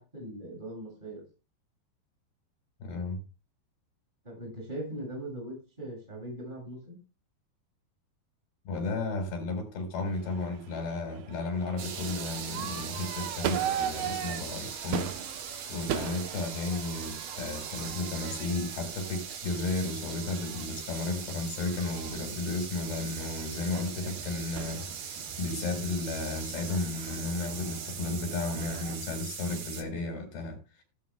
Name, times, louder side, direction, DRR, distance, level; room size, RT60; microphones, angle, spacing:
voice 1, 0.1-1.2 4.2-7.0, right 1 dB, 10° right, 6.7 m, -40 dB
voice 2, 2.8-3.2 8.7-15.1 15.4-30.8, left 3 dB, 85° left, 6.5 m, -34 dB
Crowd / Fireworks, 10.1-29.1, right 10 dB, 80° right, 2.8 m, -40 dB
sound 1, 11.8-29.8, right 6 dB, 50° right, 2.3 m, -40 dB
16.5 x 13.5 x 2.3 m
omnidirectional pair, 4.4 m